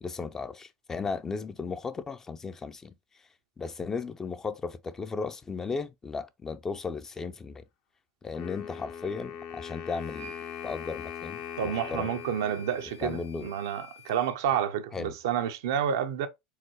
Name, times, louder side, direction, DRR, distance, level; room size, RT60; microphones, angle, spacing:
voice 1, 0.0-2.9 3.6-7.6 8.2-10.4 10.6-12.1 13.0-13.5 14.9-15.1, left 4 dB, 20° left, 0.5 m, -35 dB
Wind instrument woodwind instrument, 8.3-13.4, left 8 dB, 55° left, 0.8 m, -41 dB
sound 1, 10.1-14.3, left 6 dB, 90° right, 1.5 m, -48 dB
voice 2, 11.6-16.3, right 9 dB, 65° right, 0.6 m, -29 dB
4.7 x 3.6 x 3.0 m
hypercardioid pair, 80°, 2 cm